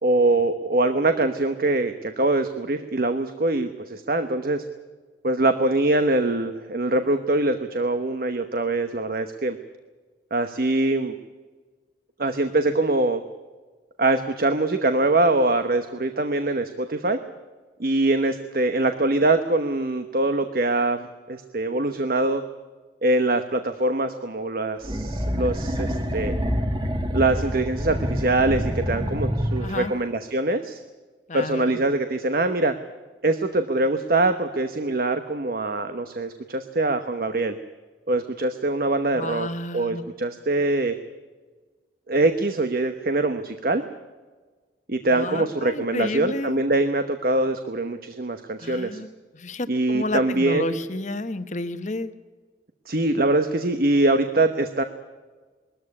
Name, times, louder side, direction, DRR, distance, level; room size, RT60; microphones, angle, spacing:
voice 1, 0.0-4.6 5.2-9.6 10.3-11.1 12.2-13.2 14.0-17.2 17.8-22.4 23.0-26.3 27.1-30.8 31.3-32.7 33.2-37.5 38.1-39.5 39.7-40.9 42.1-43.8 44.9-49.0 49.7-50.8 52.9-54.8, right 2 dB, 55° right, 8 dB, 1.1 m, -23 dB
sound 1, 24.8-30.1, equal, 25° right, 1.9 m, -27 dB
voice 2, 29.6-29.9 31.3-31.8 39.1-40.0 45.1-46.6 48.6-49.1 49.3-52.1, left 2 dB, 45° left, 10 dB, 1.1 m, -31 dB
21.5 x 14.0 x 9.8 m, 1.4 s
head